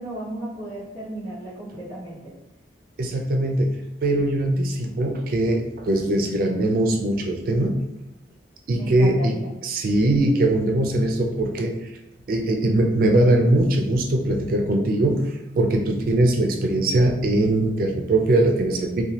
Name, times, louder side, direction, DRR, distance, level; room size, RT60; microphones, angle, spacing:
voice 1, 0.0-2.3 8.7-9.5, right 1 dB, 75° left, -12 dB, 1.0 m, -34 dB
voice 2, 3.0-7.8 8.7-9.3 9.6-11.9 12.3-19.0, right 1 dB, 55° right, 3 dB, 0.3 m, -21 dB
2.7 x 2.2 x 2.9 m, 0.89 s
head